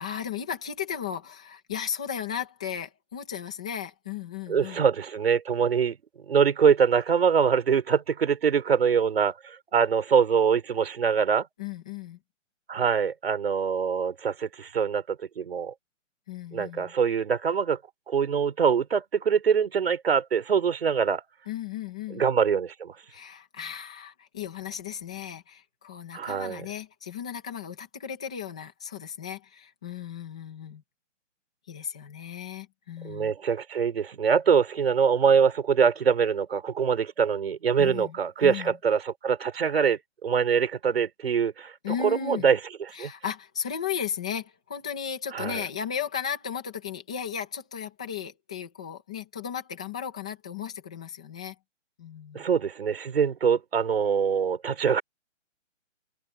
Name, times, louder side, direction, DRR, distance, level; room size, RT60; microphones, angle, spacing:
voice 1, 0.0-4.8 11.6-12.2 16.3-16.9 21.5-22.2 23.1-30.8 31.7-33.3 37.8-38.8 41.8-42.5 42.9-51.6 52.0-52.5, left 8 dB, 5° left, 0.7 m, -35 dB
voice 2, 4.5-6.0 6.3-11.5 12.7-15.7 16.5-17.8 18.1-21.2 22.1-22.9 26.1-26.6 33.0-41.7 42.0-42.6 43.0-43.1 45.3-45.6 52.3-55.0, right 6 dB, 50° right, 4.1 m, -24 dB
hypercardioid pair, 175°, 38 cm